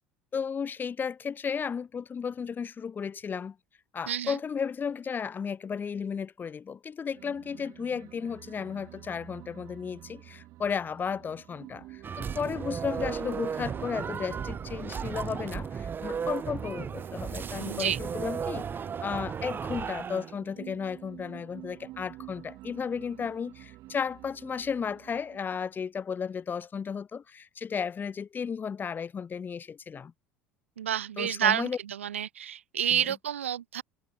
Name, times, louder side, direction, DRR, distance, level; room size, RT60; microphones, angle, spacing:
voice 1, 0.3-3.6 3.9-18.7 19.0-30.1 31.2-31.8 32.9-33.1, left 6 dB, 30° left, 1.1 m, -34 dB
sound 1, 7.1-25.7, right 17 dB, 55° right, 2.5 m, -48 dB
sound 2, 12.0-20.3, right 6 dB, 30° right, 3.3 m, -35 dB
voice 2, 17.6-18.0 30.8-33.8, right 10 dB, 80° right, 0.9 m, -29 dB
figure-of-eight pair, 70°, 7 cm